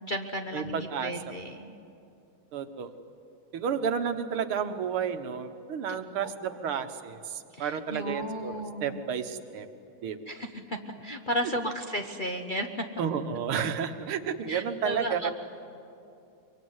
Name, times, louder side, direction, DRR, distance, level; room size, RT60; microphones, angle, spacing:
voice 1, 0.0-1.7 5.9-6.3 7.5-9.0 10.3-12.9 14.5-15.3, equal, 35° left, 3 dB, 0.8 m, -34 dB
voice 2, 0.5-1.1 2.5-2.9 3.5-8.5 8.8-9.7 10.0-10.2 11.4-11.5 13.0-15.3, right 7 dB, 90° right, 8 dB, 2.1 m, -31 dB
23.5 x 23.5 x 9.6 m, 2.6 s
omnidirectional pair, 2.3 m